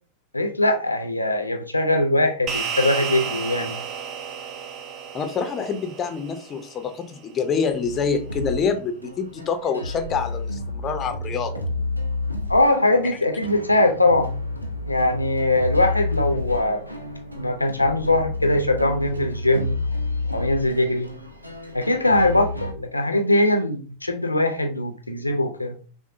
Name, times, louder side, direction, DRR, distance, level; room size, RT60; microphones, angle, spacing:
voice 1, 0.3-3.8 12.5-14.3 14.9-16.9 17.3-19.8 20.3-21.1 21.7-25.8, left 1 dB, 85° left, 5 dB, 0.5 m, -21 dB
sound 1, 2.5-7.1, right 7 dB, 35° right, 0.5 m, -32 dB
voice 2, 5.1-11.6, left 5 dB, 25° left, 7 dB, 0.5 m, -26 dB
sound 2, 7.8-22.7, left 2 dB, 85° right, 0.6 m, -30 dB
5.8 x 2.1 x 2.5 m, 0.38 s
figure-of-eight pair, 90°, 0 cm